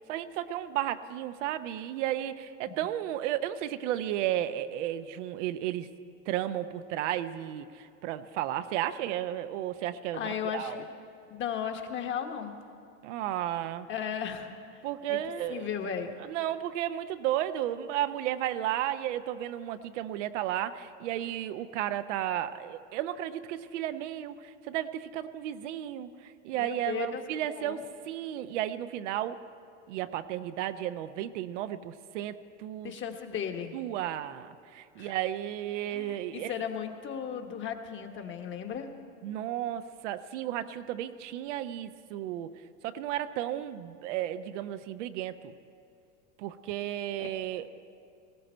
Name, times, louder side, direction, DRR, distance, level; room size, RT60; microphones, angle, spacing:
voice 1, 0.0-5.9 6.3-10.8 13.0-13.9 14.8-15.7 16.2-29.4 29.9-32.9 33.7-36.5 39.2-42.5 42.8-45.5 46.4-47.7, right 12 dB, 65° right, 10 dB, 0.8 m, -33 dB
voice 2, 10.1-10.9 11.3-12.6 13.9-14.5 15.1-15.2 15.5-16.1 26.5-27.8 32.8-33.7 35.0-35.1 35.9-38.9 47.2-47.3, left 8 dB, 30° left, 5 dB, 1.3 m, -35 dB
19.0 x 15.5 x 4.4 m, 2.5 s
hypercardioid pair, 115°, 39 cm